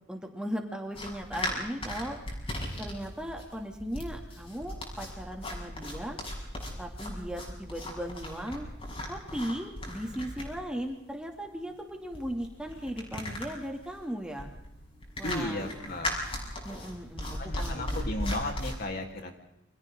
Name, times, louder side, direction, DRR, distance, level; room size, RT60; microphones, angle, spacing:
voice 1, 0.1-2.2 2.8-6.2 6.8-8.7 9.1-14.5 15.2-16.0 16.6-18.0, equal, 5° right, 2 dB, 2.7 m, -37 dB
sound 1, 0.9-18.7, left 1 dB, 30° left, 7.0 m, -37 dB
voice 2, 15.2-16.1 17.4-19.4, left 1 dB, 55° left, 2 dB, 3.8 m, -34 dB
29.0 x 26.5 x 3.9 m, 0.86 s
head